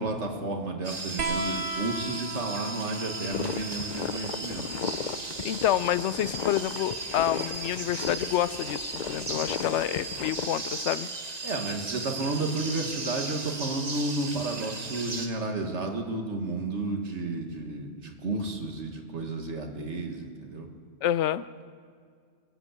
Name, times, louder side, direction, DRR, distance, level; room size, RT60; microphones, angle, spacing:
voice 1, 0.0-4.7 11.4-20.7, right 2 dB, 85° right, 3 dB, 2.0 m, -32 dB
sound 1, 0.8-15.3, right 3 dB, 35° right, 1.2 m, -37 dB
sound 2, 1.2-8.3 9.6-10.4 11.7-11.8, right 2 dB, 55° right, 1.2 m, -39 dB
sound 3, 3.3-10.5, left 7 dB, 50° left, 0.6 m, -35 dB
voice 2, 5.4-11.1 21.0-21.5, left 12 dB, 85° left, 16 dB, 0.9 m, -28 dB
21.0 x 8.1 x 8.3 m, 2.1 s
omnidirectional pair, 1.2 m